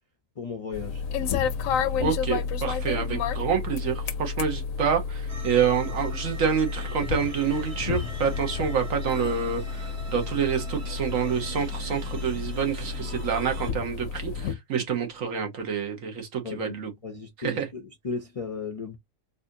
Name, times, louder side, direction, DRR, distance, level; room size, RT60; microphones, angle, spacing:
voice 1, 0.4-1.0 14.8-14.9 16.4-19.0, left 5 dB, 45° left, 0.4 m, -36 dB
sound 1, 0.7-14.5, left 6 dB, 75° left, 1.0 m, -31 dB
voice 2, 2.0-16.9 17.4-17.6, right 7 dB, 75° right, 1.4 m, -27 dB
sound 2, 5.3-13.7, right 3 dB, 55° right, 1.5 m, -42 dB
4.1 x 2.6 x 2.7 m
omnidirectional pair, 1.4 m